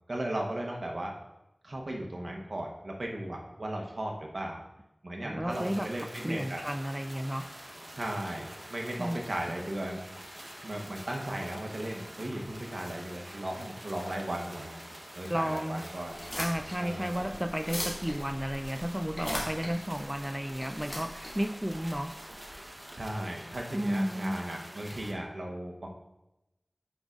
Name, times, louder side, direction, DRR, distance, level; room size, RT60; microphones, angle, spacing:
voice 1, 0.1-1.1 1.6-4.6 5.0-6.6 8.0-10.0 10.6-14.7 15.1-16.2 16.8-17.3 22.9-25.9, right 1 dB, 75° right, 0 dB, 1.0 m, -36 dB
voice 2, 5.2-5.9 6.2-7.5 9.0-9.2 15.3-15.8 16.4-22.2 23.7-24.4, equal, 15° right, 8 dB, 0.3 m, -32 dB
sound 1, 5.5-25.1, right 1 dB, 35° right, 0.9 m, -46 dB
sound 2, 16.1-22.5, left 1 dB, 40° left, 2.0 m, -40 dB
8.5 x 5.2 x 2.4 m, 0.94 s
wide cardioid pair, 40°, 0 cm